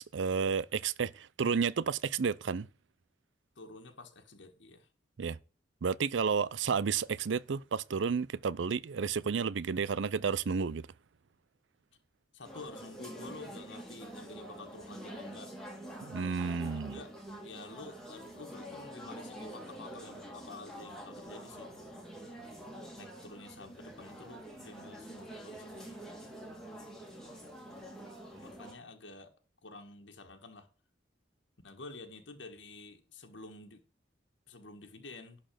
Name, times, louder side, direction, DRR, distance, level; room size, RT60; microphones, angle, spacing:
voice 1, 0.0-2.7 5.2-5.4 5.8-10.9 16.0-17.0, right 6 dB, 80° right, 0.5 m, -31 dB
voice 2, 3.6-4.9 12.3-15.6 16.7-17.1 17.4-21.7 23.0-26.0 28.4-29.3 29.6-30.7 31.6-33.8 34.5-35.4, left 3 dB, 80° left, 1.6 m, -49 dB
sound 1, 12.4-28.7, right 1 dB, 5° left, 2.4 m, -46 dB
11.5 x 4.2 x 7.6 m
head